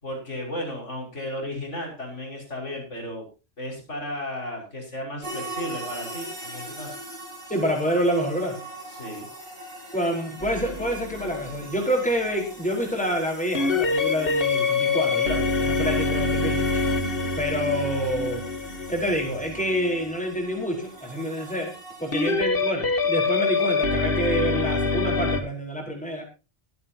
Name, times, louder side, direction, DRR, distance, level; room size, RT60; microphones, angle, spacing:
voice 1, 0.0-3.2 3.6-7.0 8.9-9.3, left 1 dB, 80° left, 0 dB, 6.4 m, -34 dB
sound 1, 5.2-22.3, right 1 dB, 45° right, 5.0 m, -41 dB
voice 2, 7.5-8.6 9.9-16.8 17.4-18.4 18.9-21.7 22.0-26.2, equal, 5° left, 1 dB, 4.8 m, -27 dB
sound 2, 10.4-11.7 13.5-20.0 22.1-25.4, left 4 dB, 50° left, 1.7 m, -25 dB
24.0 x 8.8 x 2.9 m, 0.31 s
omnidirectional pair, 1.2 m